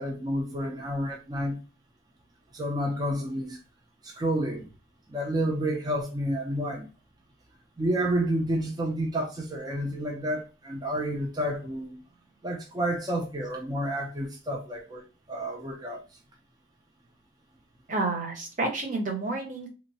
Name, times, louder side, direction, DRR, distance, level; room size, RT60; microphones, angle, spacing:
voice 1, 0.0-1.6 2.5-3.6 4.0-4.7 5.1-6.9 7.8-12.0 12.4-16.0, right 1 dB, 20° right, 0.4 m, -30 dB
voice 2, 17.9-19.7, right 2 dB, 40° right, 0.8 m, -30 dB
3.0 x 2.1 x 2.6 m
head